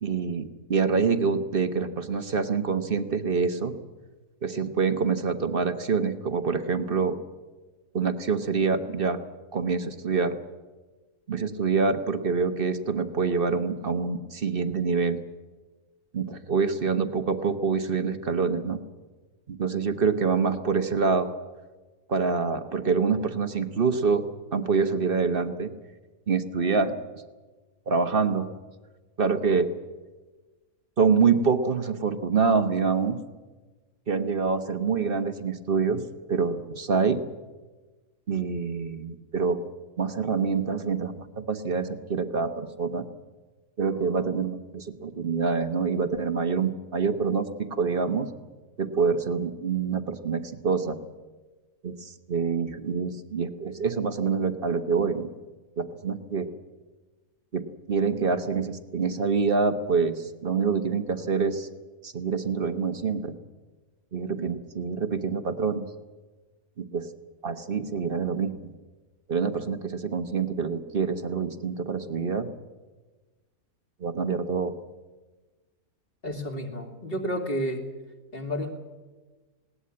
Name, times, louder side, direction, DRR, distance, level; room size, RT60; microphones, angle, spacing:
voice 1, 0.0-3.7 4.4-7.1 7.9-9.2 9.5-10.4 11.3-15.2 16.1-18.8 19.5-21.3 22.1-24.2 24.5-25.7 26.3-27.0 27.9-28.5 29.2-29.7 31.0-33.2 34.1-36.0 36.3-37.2 38.3-39.6 40.0-43.0 43.8-48.3 48.8-51.0 51.8-55.3 55.8-56.5 57.5-61.7 62.0-63.4 64.1-65.9 66.8-67.1 67.4-68.5 69.3-72.5 74.0-74.7, right 5 dB, 40° right, 9 dB, 1.2 m, -26 dB
voice 2, 76.2-77.8 78.3-78.8, equal, 40° left, 2 dB, 2.7 m, -31 dB
20.0 x 18.0 x 8.6 m, 1.3 s
omnidirectional pair, 1.6 m